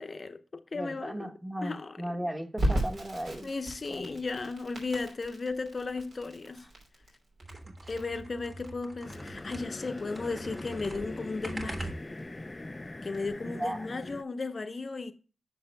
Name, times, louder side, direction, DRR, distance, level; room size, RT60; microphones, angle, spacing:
voice 1, 0.0-1.3 1.6-2.0 3.4-6.7 7.9-12.0 13.0-15.1, left 3 dB, 50° left, 0.8 m, -35 dB
voice 2, 0.7-3.5 3.9-4.1 7.6-7.7 13.4-13.9, right 1 dB, 15° right, 1.4 m, -36 dB
Crackle, 2.6-13.3, right 1 dB, 70° right, 2.9 m, -37 dB
sound 1, 7.4-9.9 10.1-12.4, right 2 dB, 40° right, 1.7 m, -43 dB
sound 2, 9.0-14.2, left 2 dB, 30° left, 0.5 m, -42 dB
9.6 x 6.1 x 2.2 m
cardioid pair, 50°, 0 cm